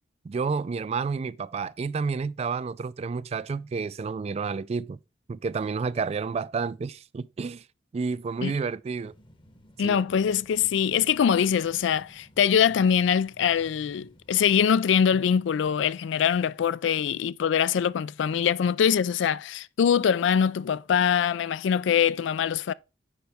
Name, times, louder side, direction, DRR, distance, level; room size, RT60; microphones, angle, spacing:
voice 1, 0.2-5.0 5.3-7.6 7.9-9.1 9.8-10.0, right 5 dB, 35° right, 0.3 m, -30 dB
sound 1, 9.0-14.6, equal, 25° left, 0.9 m, -55 dB
voice 2, 9.8-22.7, left 8 dB, 85° left, 0.3 m, -23 dB
8.8 x 5.3 x 3.5 m
head